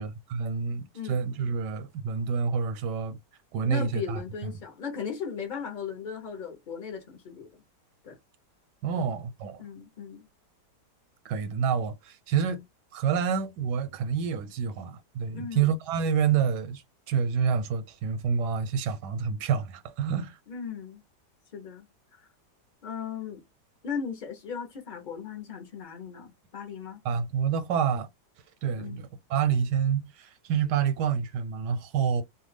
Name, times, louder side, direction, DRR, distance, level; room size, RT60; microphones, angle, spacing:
voice 1, 0.0-3.2 3.5-4.5 8.8-9.6 11.2-12.6 12.9-20.4 27.0-28.1 28.6-32.2, right 7 dB, 85° right, 1.2 m, -28 dB
voice 2, 3.6-7.6 8.0-8.2 9.0-9.1 9.6-10.2 15.3-15.7 20.5-21.0 21.5-22.3 22.8-23.4 23.8-27.0 28.8-29.0, left 6 dB, 45° left, 0.6 m, -37 dB
2.7 x 2.3 x 3.2 m
omnidirectional pair, 1.8 m